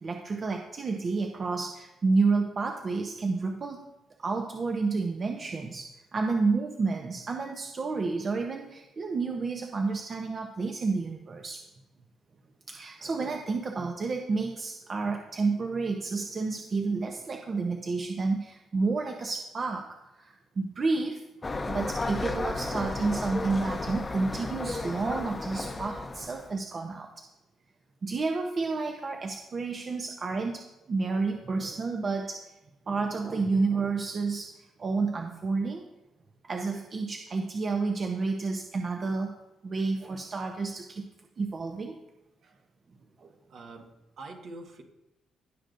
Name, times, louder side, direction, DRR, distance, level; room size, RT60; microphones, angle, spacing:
voice 1, 0.0-3.9 4.2-11.6 12.7-19.9 20.1-27.1 28.0-32.4 32.9-34.5 34.8-35.8 36.4-39.3 39.6-41.1 41.4-42.0 43.2-43.3, right 4 dB, 40° right, 3 dB, 0.8 m, -30 dB
sound 1, 21.4-26.6, left 3 dB, 25° left, 0.8 m, -33 dB
voice 2, 43.5-44.8, right 2 dB, 65° right, 2 dB, 1.6 m, -46 dB
17.0 x 6.2 x 2.7 m, 0.95 s
cardioid pair, 90°, 0 cm